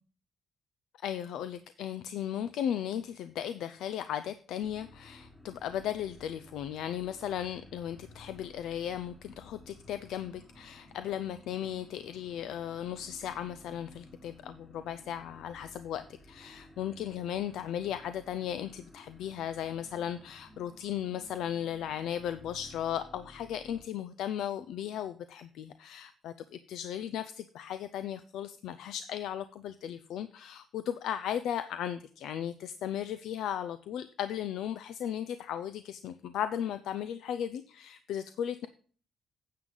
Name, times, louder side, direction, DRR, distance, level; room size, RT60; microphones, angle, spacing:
voice 1, 1.0-38.7, left 10 dB, 80° left, 12 dB, 0.5 m, -36 dB
sound 1, 4.6-23.8, left 1 dB, 20° left, 2.0 m, -55 dB
9.6 x 7.5 x 3.9 m, 0.43 s
cardioid pair, 90°, 0 cm